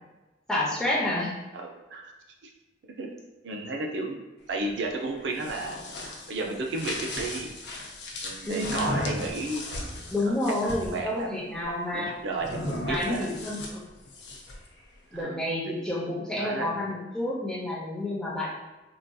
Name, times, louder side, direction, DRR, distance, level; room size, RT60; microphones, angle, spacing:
voice 1, 0.5-1.4 8.4-8.8 10.1-12.3 12.9-13.8 15.1-18.5, left 1 dB, 5° left, -6 dB, 0.6 m, -29 dB
voice 2, 1.5-2.1 3.0-3.1 3.4-4.2 4.5-5.8 6.3-7.5 8.2-10.4 10.6-11.3 11.9-13.3 15.1-15.8 16.3-16.7, right 2 dB, 80° right, 1 dB, 0.4 m, -33 dB
sound 1, 5.2-11.0 12.4-14.7, left 1 dB, 70° left, 0.5 m, -36 dB
3.8 x 2.6 x 2.2 m, 1.1 s
head